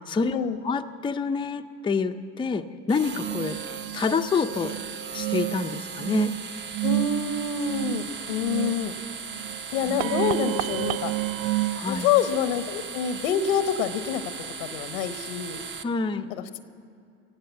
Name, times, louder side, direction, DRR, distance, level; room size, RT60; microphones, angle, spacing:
voice 1, 0.1-0.4 0.6-3.6 3.9-4.7 5.1-6.4 9.9-10.1 11.7-12.1 15.8-16.3, left 4 dB, 15° left, 6 dB, 0.5 m, -27 dB
sound 1, 2.9-15.8, right 6 dB, 30° right, 0.8 m, -38 dB
sound 2, 3.2-11.8, right 17 dB, 60° right, 0.5 m, -31 dB
voice 2, 6.8-8.9 9.7-11.1 11.9-14.2 14.6-15.6 16.3-16.6, left 7 dB, 85° left, 12 dB, 0.9 m, -27 dB
17.5 x 7.6 x 8.2 m, 2.5 s
supercardioid pair, 90°, 39 cm